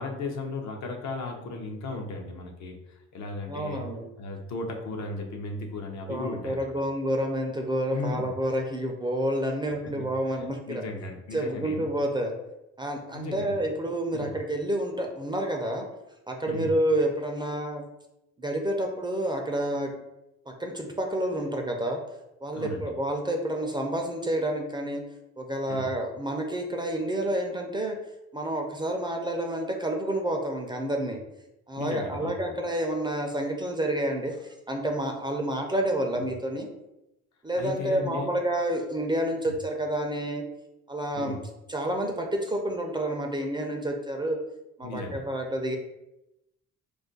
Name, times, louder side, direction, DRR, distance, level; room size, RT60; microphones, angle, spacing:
voice 1, 0.0-3.8 4.2-6.7 7.9-8.3 10.0-10.1 10.7-11.9 13.1-13.6 14.1-14.3 16.5-16.7 22.5-22.9 25.7-25.9 31.8-32.6 36.2-36.3 37.6-38.3 41.2-41.4 44.8-45.2, left 2 dB, 70° left, 2 dB, 0.6 m, -35 dB
voice 2, 3.5-4.1 6.1-10.8 11.3-12.3 12.8-15.9 16.3-17.8 18.4-19.9 20.5-22.0 22.4-25.0 25.4-28.0 28.3-31.2 31.7-36.7 37.4-40.4 40.9-41.4 41.7-44.4 44.8-45.8, right 1 dB, 15° right, 2 dB, 0.4 m, -29 dB
2.4 x 2.2 x 3.8 m, 0.92 s
cardioid pair, 90°, 30 cm